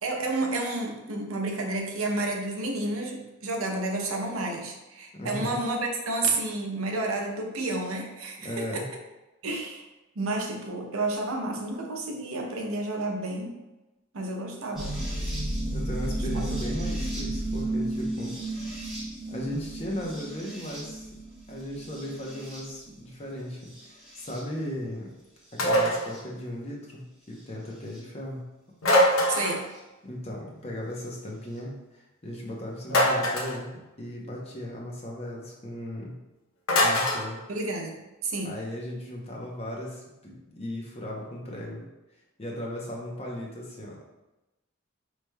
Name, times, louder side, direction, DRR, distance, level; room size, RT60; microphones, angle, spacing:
voice 1, 0.0-8.8 9.4-9.8 10.2-13.6 14.1-15.0 16.3-16.4 29.3-29.7 37.5-38.0 38.2-38.5, right 2 dB, 80° right, 1 dB, 0.7 m, -30 dB
voice 2, 5.1-5.6 8.4-8.9 15.7-18.3 19.3-21.1 21.5-25.1 25.5-28.4 30.0-36.1 36.8-37.4 38.4-41.8 42.4-44.1, left 1 dB, 30° left, -2 dB, 0.7 m, -37 dB
sound 1, 14.7-22.9 23.6-24.4 25.6-26.2 27.9-28.0 29.7-29.8, right 1 dB, ahead, 0.8 m, -33 dB
sound 2, 25.6-26.1 28.8-29.6 32.9-33.6 36.7-37.2, equal, 85° left, 0.7 m, -22 dB
4.9 x 3.1 x 2.2 m, 1.0 s
head